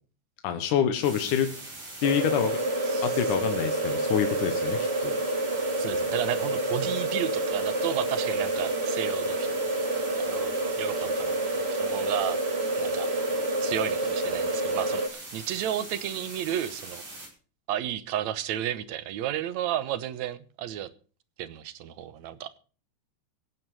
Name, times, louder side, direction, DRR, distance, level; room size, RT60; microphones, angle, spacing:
voice 1, 0.4-1.5 2.0-2.6 3.0-5.1, left 9 dB, 85° left, 7 dB, 2.7 m, -26 dB
sound 1, 1.0-17.3, right 2 dB, 85° right, 9.1 m, -42 dB
sound 2, 2.0-15.1, right 2 dB, 35° right, 1.0 m, -28 dB
voice 2, 5.8-9.5 10.2-11.4 11.7-12.4 12.8-13.1 13.6-17.0 17.7-20.9 21.4-22.6, right 11 dB, 70° right, 15 dB, 2.2 m, -32 dB
16.5 x 9.3 x 6.4 m, 0.39 s
omnidirectional pair, 3.5 m